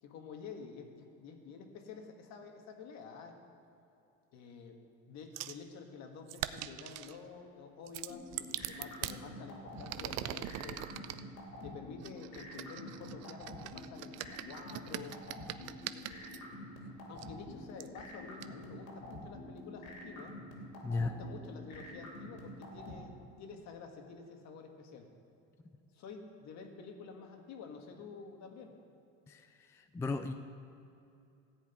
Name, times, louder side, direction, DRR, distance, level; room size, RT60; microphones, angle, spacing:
voice 1, 0.0-3.4 4.3-4.8 5.1-10.9 11.6-15.2 15.9-16.3 17.1-20.4 20.9-25.1 25.9-28.7, left 5 dB, 55° left, 4 dB, 1.6 m, -49 dB
sound 1, 5.4-5.6 6.3-7.2 7.9-9.2 9.8-11.2 12.0-16.4 17.2-17.3 17.8-17.9 18.4-18.5, right 14 dB, 50° right, 0.5 m, -42 dB
sound 2, 8.1-22.9, left 2 dB, 75° left, 2.8 m, -47 dB
voice 2, 29.9-30.3, left 3 dB, 10° left, 8 dB, 0.3 m, -33 dB
14.0 x 5.1 x 9.1 m, 2.7 s
cardioid pair, 125°, 33 cm